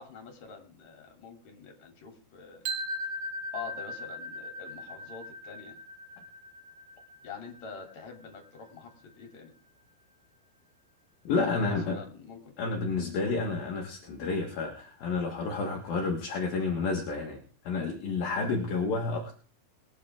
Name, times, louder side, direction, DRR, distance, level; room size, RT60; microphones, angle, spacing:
voice 1, 0.0-2.6 3.5-5.8 7.2-9.5 11.4-12.5, left 6 dB, 45° left, 2 dB, 4.1 m, -45 dB
sound 1, 2.6-8.6, equal, 60° right, 2.1 m, -39 dB
voice 2, 11.3-12.0 12.6-17.4 17.7-19.4, left 4 dB, 65° left, -1 dB, 3.4 m, -30 dB
22.5 x 9.2 x 3.6 m, 0.42 s
omnidirectional pair, 4.7 m